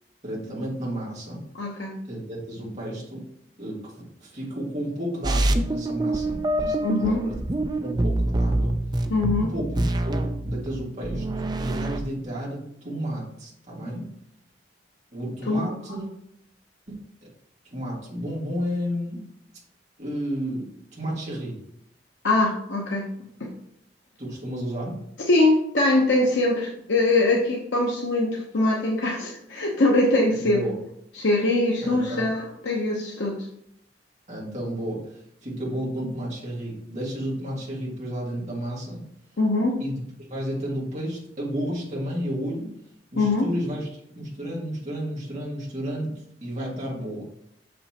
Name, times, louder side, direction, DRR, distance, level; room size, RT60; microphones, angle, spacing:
voice 1, 0.2-1.4 2.1-3.3 3.6-7.4 7.8-8.7 9.3-11.3 11.6-14.1 15.1-16.1 17.7-19.3 20.0-21.6 24.2-25.0 30.3-30.7 31.8-32.3 34.3-39.0 39.8-42.7 43.1-43.9 44.2-47.2, equal, 40° right, -6 dB, 1.9 m, -32 dB
voice 2, 1.6-1.9 6.8-7.2 9.1-9.5 15.5-15.6 22.2-23.0 23.4-23.5 25.3-30.6 31.1-33.4 39.4-39.8 43.2-43.5, left 2 dB, 80° left, -2 dB, 0.8 m, -22 dB
sound 1, 5.2-12.0, right 1 dB, 20° right, 0.4 m, -25 dB
6.5 x 5.4 x 2.9 m, 0.73 s
head